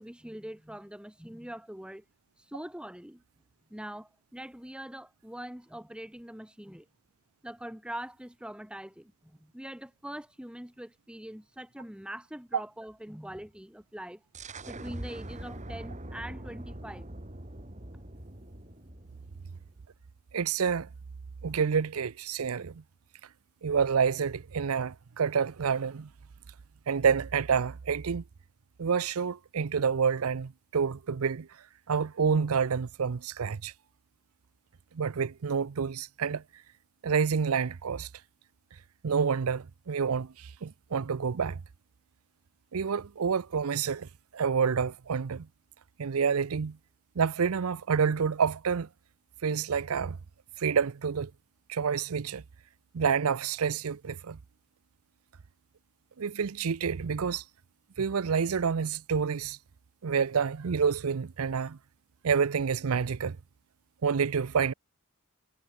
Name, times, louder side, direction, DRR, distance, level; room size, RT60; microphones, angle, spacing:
voice 1, 0.0-2.0 2.5-3.2 3.7-6.9 7.4-14.2 14.7-17.1, right 1 dB, 5° right, 1.4 m, -43 dB
sound 1, 14.3-19.8, right 1 dB, 35° right, 2.7 m, -43 dB
voice 2, 20.3-20.9 21.4-22.8 23.6-26.1 26.9-28.2 28.8-31.5 31.9-33.7 34.9-36.4 37.0-38.1 39.0-41.6 42.7-44.1 44.3-45.5 46.0-46.8 47.2-48.9 49.4-50.2 50.6-51.3 51.7-52.4 52.9-54.4 56.2-57.4 58.0-59.6 60.0-61.8 62.2-63.4 64.0-64.7, right 6 dB, 80° right, 0.6 m, -28 dB
head